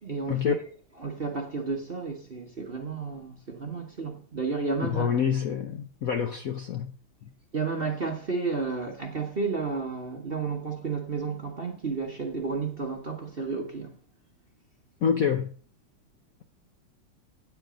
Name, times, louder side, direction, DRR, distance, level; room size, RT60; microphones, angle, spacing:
voice 1, 0.0-0.6 1.0-5.1 7.5-14.0, right 4 dB, 35° right, 0.9 m, -32 dB
voice 2, 4.8-6.9 7.2-7.3 15.0-15.5, left 7 dB, 60° left, 0.9 m, -27 dB
9.2 x 7.9 x 5.1 m
omnidirectional pair, 2.4 m